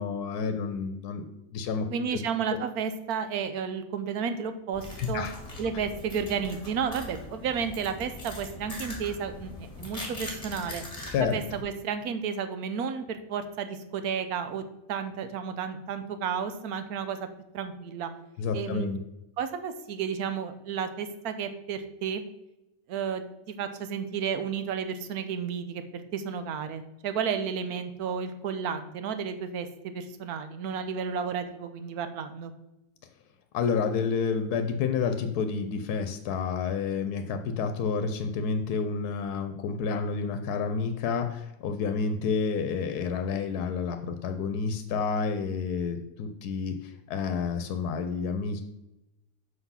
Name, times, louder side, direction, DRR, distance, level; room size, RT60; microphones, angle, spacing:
voice 1, 0.0-1.9 5.0-5.3 11.1-11.4 18.4-19.0 33.5-48.6, left 5 dB, 90° left, 8 dB, 1.2 m, -29 dB
voice 2, 1.9-5.3 5.6-10.8 11.3-14.6 14.9-17.3 17.5-18.1 18.5-19.0 19.4-22.2 22.9-32.5, right 7 dB, 80° right, 10 dB, 1.2 m, -32 dB
sound 1, 4.7-11.6, left 2 dB, 25° left, 1.9 m, -41 dB
5.9 x 5.7 x 5.6 m, 0.92 s
omnidirectional pair, 1.6 m